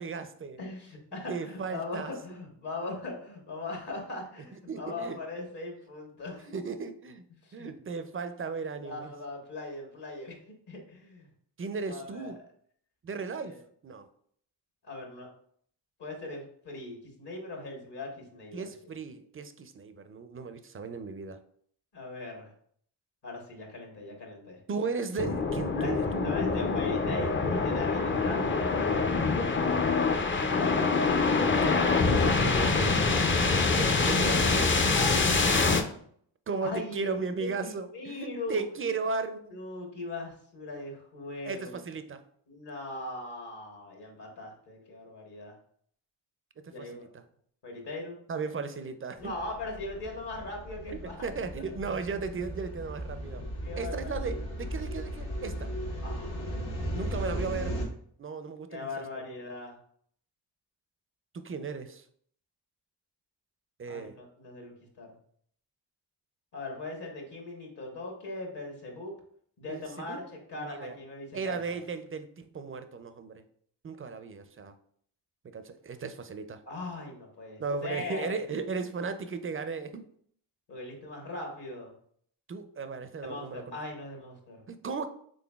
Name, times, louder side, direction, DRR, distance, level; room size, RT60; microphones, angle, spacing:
voice 1, 0.0-0.6 1.3-2.1 4.7-5.2 6.5-7.2 7.5-9.1 11.6-12.4 13.0-13.6 13.8-14.1 18.5-21.4 24.7-26.0 26.5-26.6 31.6-34.7 36.5-39.6 41.5-42.2 46.6-47.2 48.3-49.3 51.0-53.4 53.8-55.7 56.9-57.8 58.2-59.0 61.3-62.0 63.8-64.2 69.7-70.2 70.5-71.0 71.3-73.4 73.8-74.7 75.4-76.6 77.6-80.1 82.5-83.8 84.7-85.1, right 4 dB, 30° right, 10 dB, 0.4 m, -36 dB
voice 2, 0.6-6.5 7.4-7.7 8.8-10.3 10.7-11.3 11.9-12.3 13.4-13.6 14.8-15.3 16.0-18.6 21.9-22.5 23.2-24.6 25.7-29.8 34.9-35.2 36.6-38.6 39.5-41.8 42.5-45.6 46.6-47.1 47.6-48.2 49.2-51.2 51.6-51.7 53.6-54.4 56.0-56.5 58.7-59.8 63.9-65.1 66.5-69.1 69.6-71.8 76.7-78.3 80.7-81.9 83.2-84.6, left 2 dB, 60° left, 1 dB, 1.3 m, -39 dB
sound 1, 25.2-35.8, left 4 dB, 25° left, 0.4 m, -25 dB
sound 2, 49.2-57.8, equal, 80° left, 1.1 m, -36 dB
3.8 x 3.5 x 2.3 m, 0.62 s
supercardioid pair, 40°, 45 cm